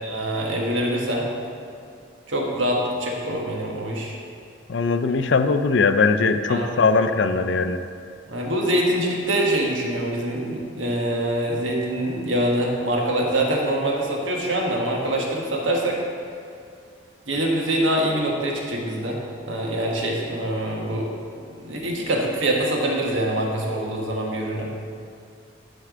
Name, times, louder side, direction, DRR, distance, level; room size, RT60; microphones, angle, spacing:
voice 1, 0.0-1.3 2.3-4.2 6.5-6.8 8.3-16.0 17.3-19.2 19.5-21.1 21.6-24.7, right 1 dB, 80° right, -1 dB, 1.4 m, -24 dB
voice 2, 4.7-7.8, left 4 dB, 65° left, 9 dB, 0.4 m, -20 dB
11.0 x 4.5 x 5.0 m, 2.3 s
head